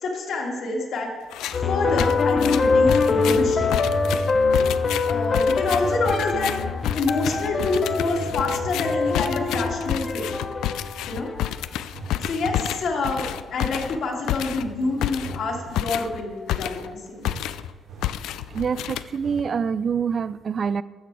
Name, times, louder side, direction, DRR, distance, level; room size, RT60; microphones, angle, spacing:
voice 1, 0.0-1.1 1.6-3.7 5.1-6.5 6.9-10.4 11.1-11.3 12.2-17.3, left 3 dB, 65° left, 0 dB, 2.2 m, -27 dB
sound 1, 1.3-1.6 2.0-17.0 17.2-17.7 18.0-19.4, left 12 dB, 85° left, 0.3 m, -30 dB
sound 2, 1.5-11.8, left 4 dB, 40° left, 0.9 m, -24 dB
sound 3, 3.1-4.5 7.2-9.9 11.9-12.8 14.6-15.9 17.2-18.9 19.2-19.6, right 3 dB, 80° right, 2.4 m, -39 dB
voice 2, 18.5-20.8, right 6 dB, 50° right, 17 dB, 0.3 m, -25 dB
12.5 x 6.8 x 4.8 m, 1.4 s
cardioid pair, 90°, 0 cm